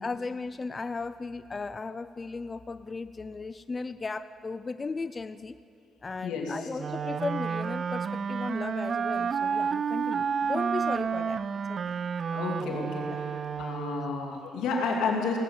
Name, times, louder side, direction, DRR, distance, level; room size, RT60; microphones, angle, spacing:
voice 1, 0.0-5.6 6.0-11.4 11.7-11.9 13.1-13.2, left 4 dB, 30° left, 12 dB, 0.4 m, -36 dB
voice 2, 6.2-6.6 12.3-15.4, left 4 dB, 90° left, 0 dB, 2.5 m, -31 dB
Wind instrument woodwind instrument, 6.8-14.3, right 6 dB, 50° right, 0.3 m, -30 dB
18.5 x 7.5 x 8.7 m, 2.5 s
cardioid pair, 90°, 0 cm